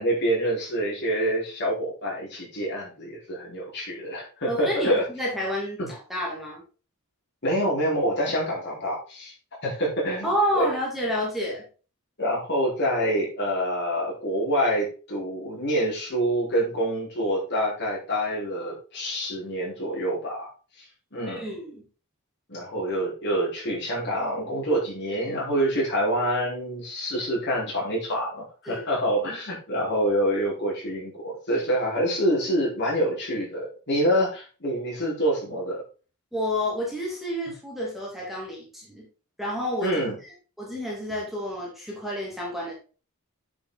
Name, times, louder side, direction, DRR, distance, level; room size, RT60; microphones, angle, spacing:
voice 1, 0.0-5.0 5.8-5.9 7.4-9.3 9.6-10.7 12.2-20.5 20.8-20.9 21.1-21.4 22.5-35.8 39.8-40.1, equal, 50° left, -4 dB, 4.7 m, -26 dB
voice 2, 4.5-6.6 10.2-11.6 21.3-21.8 28.7-28.8 36.3-39.1 39.4-39.9 40.6-42.7, equal, ahead, -4 dB, 2.6 m, -29 dB
9.4 x 5.8 x 4.1 m, 0.36 s
head